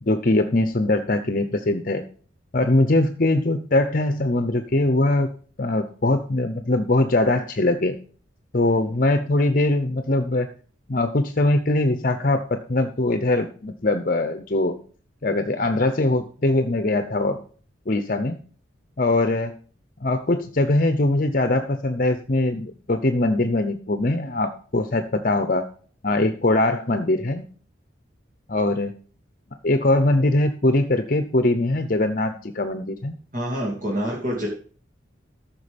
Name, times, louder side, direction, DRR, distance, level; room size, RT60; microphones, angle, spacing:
voice 1, 0.0-2.0 2.5-5.3 5.6-7.9 8.5-10.5 10.9-14.8 15.2-17.4 17.9-18.4 19.0-19.5 20.0-25.7 26.0-27.4 28.5-28.9 29.6-33.1, left 2 dB, 45° left, 8 dB, 0.8 m, -21 dB
voice 2, 33.3-34.5, equal, 45° right, -2 dB, 2.6 m, -26 dB
14.0 x 6.1 x 5.2 m, 0.42 s
head